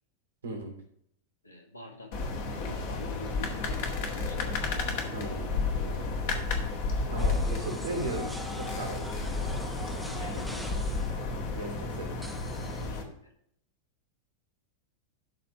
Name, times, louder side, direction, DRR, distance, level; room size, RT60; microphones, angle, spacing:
voice 1, 0.4-0.8 5.1-6.0 7.1-9.1 11.5-12.2, right 2 dB, 70° right, 1 dB, 3.2 m, -37 dB
voice 2, 1.4-4.4 10.0-10.9 12.8-13.3, left 3 dB, 85° left, 1 dB, 2.0 m, -46 dB
sound 1, 2.1-13.0, left 3 dB, 50° left, 1.9 m, -32 dB
sound 2, 7.2-12.9, right 1 dB, ahead, 1.1 m, -43 dB
12.5 x 4.3 x 5.9 m, 0.69 s
figure-of-eight pair, 90°, 0 cm